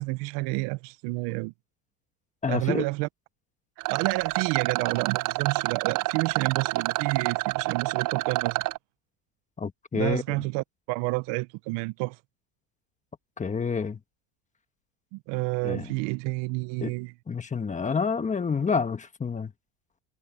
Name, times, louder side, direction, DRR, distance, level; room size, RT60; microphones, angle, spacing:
voice 1, 0.0-1.5 2.5-3.1 3.9-8.6 9.9-12.2 15.1-17.1, right 24 dB, 65° right, 0.9 m, -29 dB
voice 2, 2.4-2.8 9.6-10.2 13.4-14.0 15.6-15.9 16.8-16.9 17.3-19.5, left 5 dB, 15° left, 1.4 m, -28 dB
Rattle, 3.8-8.8, right 19 dB, 45° right, 0.6 m, -28 dB
supercardioid pair, 130°, 45 cm